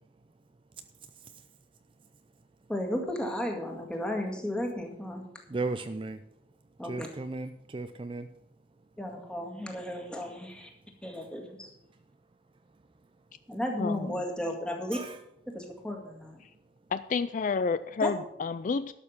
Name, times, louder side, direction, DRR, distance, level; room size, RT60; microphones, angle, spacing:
voice 1, 1.1-1.4 5.5-6.2 6.8-8.3 14.9-15.2, right 3 dB, 25° right, 9 dB, 0.4 m, -36 dB
voice 2, 2.7-5.2 6.8-7.1 9.0-10.7 11.0-11.7 13.5-15.0 15.5-16.4 18.0-18.1, left 1 dB, 5° left, 1 dB, 1.9 m, -34 dB
voice 3, 13.8-14.1 16.9-18.9, left 5 dB, 45° left, 14 dB, 0.3 m, -30 dB
12.0 x 6.7 x 7.1 m, 0.78 s
head